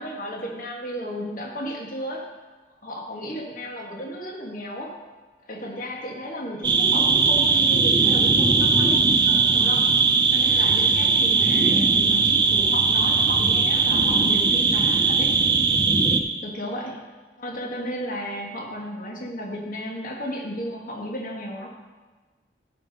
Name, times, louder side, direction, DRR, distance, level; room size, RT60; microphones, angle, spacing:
voice 1, 0.0-2.3 2.8-5.0 5.4-9.9 10.3-15.4 16.4-17.0 17.4-21.7, equal, 50° left, 0 dB, 1.5 m, -34 dB
sound 1, 6.6-16.2, right 4 dB, 25° right, 0.6 m, -19 dB
14.5 x 5.0 x 5.2 m, 1.3 s
head